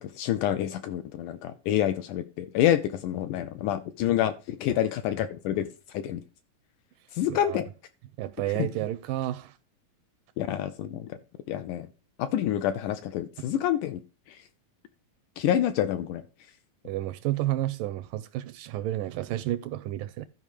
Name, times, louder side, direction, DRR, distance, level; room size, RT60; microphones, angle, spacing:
voice 1, 0.0-5.7 5.9-6.2 7.1-7.7 8.6-8.7 10.4-11.2 11.5-11.9 12.2-14.0 14.3-14.4 15.4-16.2, left 11 dB, 80° left, 1.9 m, -27 dB
voice 2, 8.2-9.5 16.8-20.3, right 14 dB, 80° right, 2.1 m, -31 dB
12.5 x 5.3 x 4.9 m
omnidirectional pair, 4.1 m